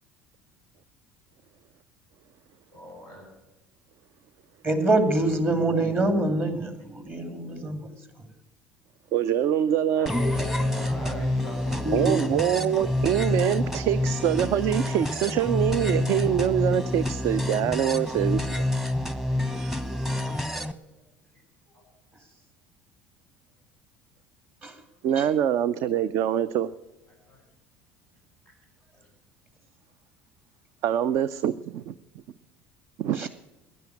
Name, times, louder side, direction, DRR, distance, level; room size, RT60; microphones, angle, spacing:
voice 1, 2.7-3.3 9.9-12.6 21.7-21.8 27.3-27.4 29.0-29.1, left 1 dB, 90° right, -8 dB, 5.5 m, -39 dB
voice 2, 4.6-8.3 11.8-12.2 24.6-24.7 25.2-25.3 33.2-33.3, right 2 dB, 30° right, 7 dB, 2.6 m, -25 dB
voice 3, 9.1-10.1 11.9-18.7 25.0-26.7 30.8-31.9 33.0-33.3, right 10 dB, 55° right, 16 dB, 0.5 m, -24 dB
sound 1, 10.1-20.7, left 1 dB, 5° right, 1.0 m, -28 dB
16.0 x 11.0 x 6.4 m, 1.1 s
figure-of-eight pair, 60°, 6 cm